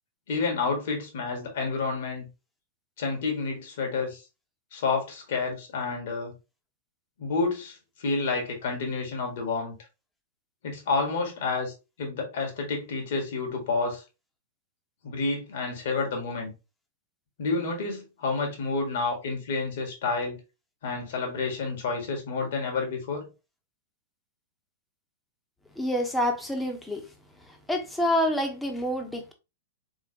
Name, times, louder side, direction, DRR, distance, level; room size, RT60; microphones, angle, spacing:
voice 1, 0.3-2.3 3.0-4.2 4.7-6.3 7.2-9.7 10.6-11.7 12.0-14.0 15.0-16.5 17.4-20.4 20.8-23.3, left 4 dB, 55° left, 1.9 m, -29 dB
voice 2, 25.8-27.1 27.7-29.3, left 1 dB, 5° left, 1.1 m, -27 dB
4.2 x 3.7 x 2.9 m
figure-of-eight pair, 105°, 0 cm